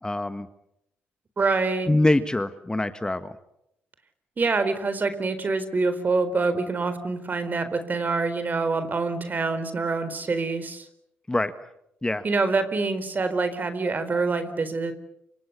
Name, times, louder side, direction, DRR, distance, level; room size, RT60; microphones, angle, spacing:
voice 1, 0.0-0.5 1.9-3.4 11.3-11.5 12.0-12.2, left 2 dB, 15° left, 10 dB, 1.5 m, -24 dB
voice 2, 1.4-1.9 4.4-10.9 12.2-14.9, right 3 dB, 40° right, 11 dB, 4.3 m, -26 dB
28.5 x 26.0 x 6.9 m, 0.78 s
supercardioid pair, 65°, 5 cm